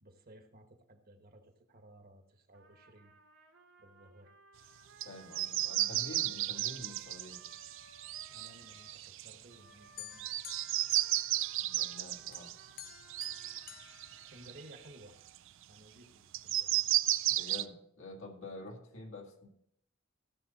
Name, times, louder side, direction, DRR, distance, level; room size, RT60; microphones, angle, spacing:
voice 1, 0.0-3.1 3.8-4.3 8.3-10.3 14.1-15.2 15.7-16.9, right 1 dB, 45° right, 6 dB, 1.3 m, -57 dB
Trumpet, 2.5-9.0 9.5-14.8, right 3 dB, 90° right, 2.0 m, -61 dB
voice 2, 5.0-7.4 11.6-12.5 17.3-19.5, left 2 dB, 70° left, 1 dB, 2.1 m, -48 dB
sound 1, 5.0-5.1 5.3-9.5 10.2-14.8 15.3-15.4 16.3-17.6, right 15 dB, 65° right, 0.4 m, -34 dB
sound 2, 10.0-11.9 12.3-14.9, left 11 dB, 45° left, 0.6 m, -52 dB
15.5 x 7.2 x 4.1 m, 0.72 s
head